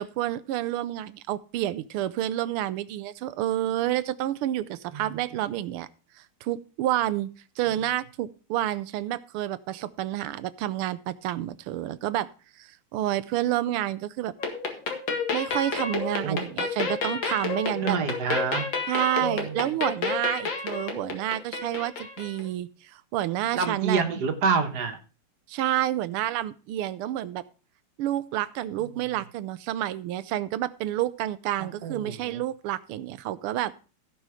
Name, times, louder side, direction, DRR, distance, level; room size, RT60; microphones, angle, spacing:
voice 1, 0.0-5.9 6.4-7.3 7.6-12.3 12.6-14.3 15.3-18.0 18.9-24.0 25.5-27.4 28.0-33.7, right 13 dB, 85° right, 16 dB, 1.6 m, -29 dB
sound 1, 14.4-22.5, left 4 dB, 60° left, 2.4 m, -30 dB
voice 2, 17.8-18.6 19.2-19.6 23.5-25.0 31.6-32.4, right 5 dB, 50° right, 7 dB, 1.7 m, -27 dB
15.5 x 5.6 x 4.9 m, 0.35 s
omnidirectional pair, 2.4 m